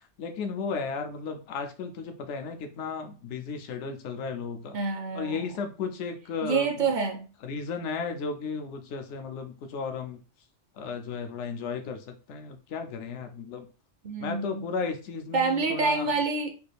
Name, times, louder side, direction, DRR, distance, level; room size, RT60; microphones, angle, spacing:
voice 1, 0.2-4.8 5.1-6.9 7.4-10.2 10.8-13.7 14.2-16.1, left 5 dB, 80° left, 6 dB, 0.9 m, -34 dB
voice 2, 4.7-5.5 6.4-7.2 14.0-14.7 15.3-16.5, right 4 dB, 55° right, 4 dB, 0.5 m, -27 dB
3.3 x 2.3 x 3.3 m, 0.34 s
omnidirectional pair, 1.2 m